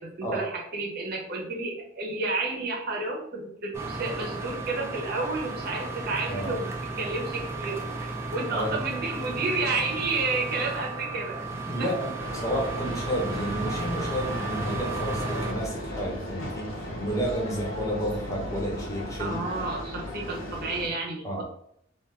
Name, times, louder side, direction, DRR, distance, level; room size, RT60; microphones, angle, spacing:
voice 1, 0.0-6.7 7.0-11.4 11.8-11.9 19.2-21.4, right 3 dB, 50° right, -1 dB, 0.7 m, -31 dB
sound 1, 3.7-15.5, right 3 dB, 15° right, 0.3 m, -34 dB
voice 2, 11.7-19.5 21.2-21.4, equal, 15° left, -2 dB, 0.8 m, -31 dB
sound 2, 12.2-20.9, left 1 dB, 70° left, 0.8 m, -36 dB
2.4 x 2.3 x 3.3 m, 0.70 s
head